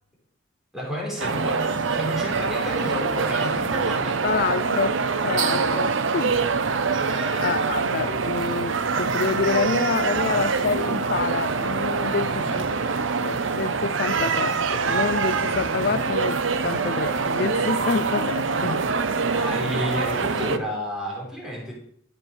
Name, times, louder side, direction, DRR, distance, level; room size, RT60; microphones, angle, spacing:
voice 1, 0.7-4.2 7.1-7.5 12.2-12.6 19.3-21.7, equal, 5° right, 4.9 m, -31 dB
sound 1, 1.2-20.6, right 4 dB, 85° right, 0.8 m, -24 dB
voice 2, 4.2-6.4 7.2-12.7 13.2-18.9, left 5 dB, 55° left, 0.5 m, -27 dB
13.5 x 7.7 x 7.0 m
head